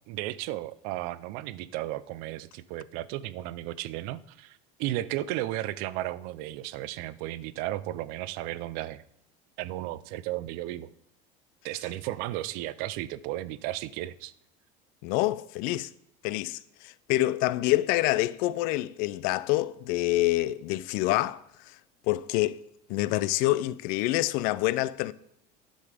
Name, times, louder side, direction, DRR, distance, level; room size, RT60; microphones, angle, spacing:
voice 1, 0.1-9.0 9.6-10.9 11.6-14.3, right 15 dB, 60° right, 0.6 m, -34 dB
voice 2, 15.0-15.9 16.2-21.8 22.1-22.6 22.9-25.1, left 17 dB, 60° left, 0.5 m, -27 dB
10.0 x 6.9 x 5.0 m
cardioid pair, 160°, 17 cm